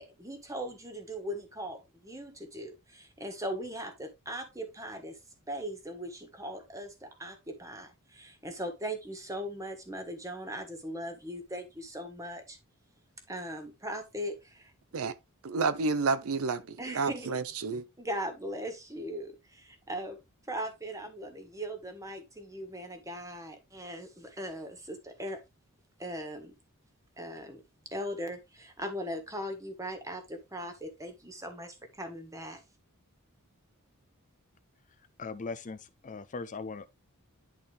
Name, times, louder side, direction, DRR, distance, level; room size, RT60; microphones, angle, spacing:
voice 1, 0.0-5.2 5.5-12.6 13.3-14.7 16.8-17.4 17.7-20.2 20.5-25.4 26.0-26.5 27.2-27.6 27.9-32.6, equal, 15° right, 1.5 m, -39 dB
voice 2, 15.4-17.8, right 4 dB, 65° right, 0.6 m, -30 dB
voice 3, 35.2-37.0, left 4 dB, 35° left, 0.5 m, -39 dB
10.5 x 4.2 x 3.3 m
head